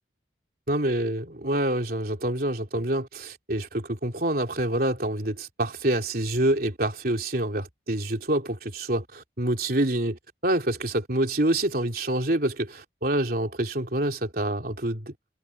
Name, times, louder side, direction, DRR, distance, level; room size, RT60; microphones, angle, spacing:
voice 1, 0.7-15.1, right 1 dB, 50° right, 3.3 m, -27 dB
head